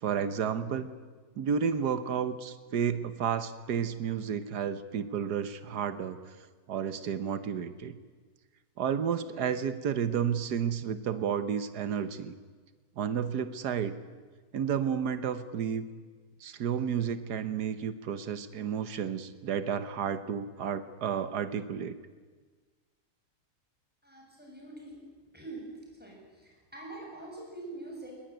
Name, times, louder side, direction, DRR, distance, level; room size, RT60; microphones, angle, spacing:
voice 1, 0.0-0.9 1.4-6.2 6.7-7.9 8.8-12.3 13.0-14.0 14.5-15.9 16.4-22.0, right 7 dB, 90° right, 12 dB, 1.7 m, -31 dB
voice 2, 24.0-25.0 25.3-25.6 26.0-28.1, right 2 dB, 5° right, -2 dB, 7.6 m, -44 dB
20.5 x 20.5 x 9.2 m, 1.4 s
omnidirectional pair, 1.7 m